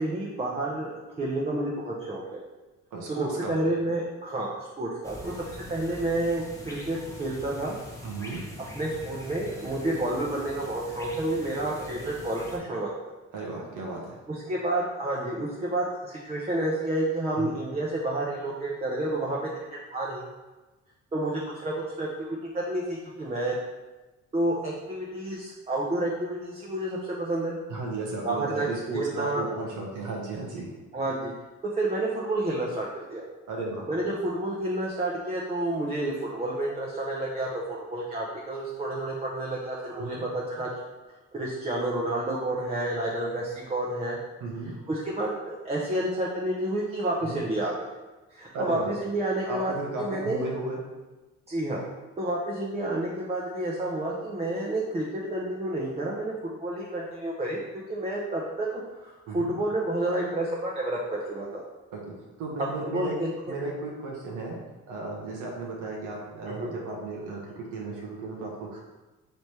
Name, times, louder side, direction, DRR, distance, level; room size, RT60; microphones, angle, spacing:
voice 1, 0.0-2.4 3.1-3.2 3.5-5.4 5.7-7.8 8.7-13.1 14.3-19.4 19.9-20.2 21.1-23.6 24.3-27.6 28.2-28.7 28.9-29.5 30.9-31.3 31.7-33.2 33.9-40.7 41.3-44.2 44.9-47.9 48.3-49.7 50.0-50.4 51.5-51.8 52.2-56.3 56.6-57.6 57.9-61.6 62.9-63.5 66.5-66.7, right 1 dB, 20° right, -4 dB, 0.6 m, -30 dB
voice 2, 2.9-3.5 8.0-8.4 13.3-14.2 17.4-17.5 27.7-30.7 33.5-33.8 39.9-40.2 44.4-44.7 47.2-47.4 48.5-48.9 49.5-50.8 59.3-59.6 61.9-62.0 62.4-63.1 63.5-64.6 64.9-67.4 67.7-68.8, right 2 dB, 85° right, -2 dB, 1.0 m, -34 dB
sound 1, 5.0-12.6, left 1 dB, 10° left, 0.9 m, -43 dB
3.3 x 3.2 x 4.2 m, 1.2 s
cardioid pair, 90°, 30 cm